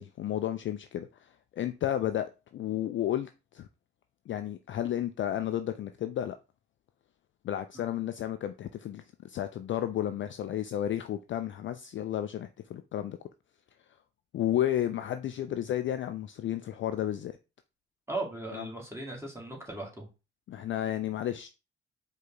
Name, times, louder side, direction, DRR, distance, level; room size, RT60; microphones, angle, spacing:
voice 1, 0.0-3.7 4.3-6.4 7.4-13.2 14.3-17.4 18.5-18.7 20.5-21.5, left 11 dB, 40° left, 0.4 m, -32 dB
voice 2, 18.1-20.1, right 2 dB, 10° right, 1.9 m, -37 dB
5.0 x 2.4 x 3.9 m
figure-of-eight pair, 40°, 32 cm